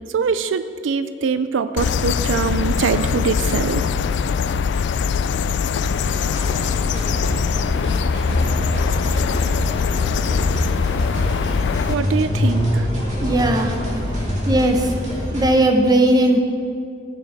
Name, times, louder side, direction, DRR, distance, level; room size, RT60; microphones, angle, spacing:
voice 1, 0.1-3.8 11.9-12.9, right 5 dB, 85° right, 12 dB, 0.4 m, -23 dB
sound 1, 1.8-11.9, left 6 dB, 65° left, 0.3 m, -22 dB
sound 2, 6.0-15.6, equal, 40° right, 2.3 m, -34 dB
sound 3, 6.7-15.5, equal, 25° left, 0.9 m, -25 dB
voice 2, 13.2-13.7 14.5-14.9 15.3-16.4, right 1 dB, 20° right, 4 dB, 0.8 m, -17 dB
14.5 x 8.8 x 3.5 m, 2.3 s
head